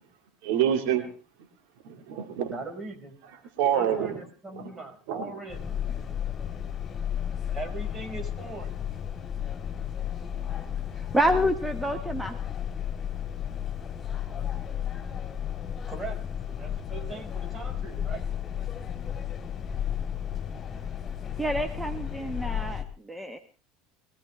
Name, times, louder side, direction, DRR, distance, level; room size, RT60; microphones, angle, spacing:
voice 1, 0.4-1.0 1.8-2.5 3.6-4.2 5.1-5.3, right 9 dB, 60° right, 5 dB, 2.3 m, -26 dB
voice 2, 2.5-3.2 3.7-5.8 7.5-8.8 15.9-18.3 18.6-18.7, right 3 dB, 25° right, 4 dB, 5.4 m, -40 dB
sound 1, 5.5-22.8, left 9 dB, 25° left, 3.3 m, -33 dB
voice 3, 11.1-12.3 21.4-23.4, equal, 5° right, 7 dB, 1.4 m, -27 dB
22.0 x 16.0 x 3.4 m, 0.35 s
figure-of-eight pair, 70°, 0 cm